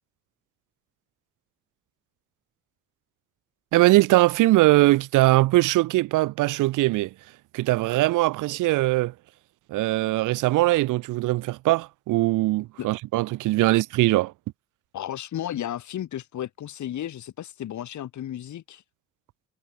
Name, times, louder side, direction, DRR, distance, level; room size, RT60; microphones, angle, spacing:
voice 1, 3.7-7.1 7.5-9.1 9.7-14.3, right 18 dB, 90° right, 0.8 m, -21 dB
voice 2, 14.9-18.8, left 11 dB, 70° left, 6.6 m, -33 dB
cardioid pair, 90°, 30 cm